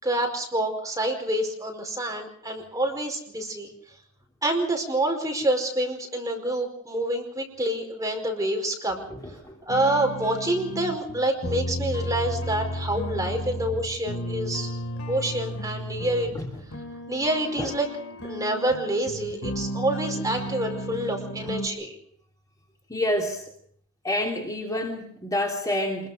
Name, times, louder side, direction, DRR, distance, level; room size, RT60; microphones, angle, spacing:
voice 1, 0.0-3.7 4.4-9.0 9.7-14.7 15.1-16.3 17.1-17.9 18.2-22.0, right 1 dB, 15° right, 2 dB, 5.0 m, -27 dB
voice 2, 9.1-9.6 16.3-16.5 17.6-17.7 22.9-23.4 24.0-26.1, left 1 dB, 15° left, -1 dB, 3.1 m, -28 dB
sound 1, 9.7-21.7, equal, 70° left, 2.9 m, -34 dB
26.0 x 22.0 x 5.1 m, 0.63 s
head